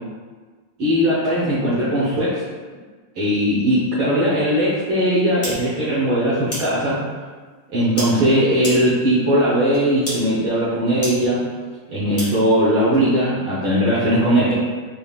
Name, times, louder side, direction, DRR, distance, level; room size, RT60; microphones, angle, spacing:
voice 1, 0.8-2.4 3.1-7.0 7.7-11.5 11.9-14.5, equal, 80° right, -9 dB, 1.1 m, -19 dB
sound 1, 5.4-5.5 6.5-6.6 8.0-8.1 8.6-8.7 9.7-9.8 10.1-10.2 11.0-11.1 12.2-12.3, equal, 50° left, 0.5 m, -26 dB
5.4 x 3.4 x 2.3 m, 1.4 s
omnidirectional pair, 3.6 m